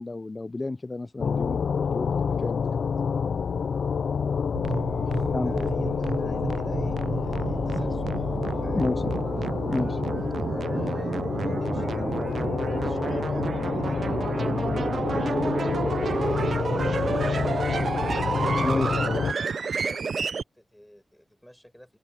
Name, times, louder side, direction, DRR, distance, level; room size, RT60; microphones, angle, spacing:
voice 1, 0.0-3.1 5.3-5.7 8.7-9.1 9.7-10.0 18.6-19.0, left 2 dB, 30° left, 0.7 m, -31 dB
sound 1, 1.2-19.3, left 6 dB, 75° left, 0.5 m, -28 dB
sound 2, 4.6-20.4, right 5 dB, 65° right, 0.6 m, -30 dB
voice 2, 4.7-8.3 8.6-8.9 10.4-14.9 16.3-16.5 19.3-22.0, equal, 5° left, 5.0 m, -49 dB
open air
cardioid pair, 65°, 0 cm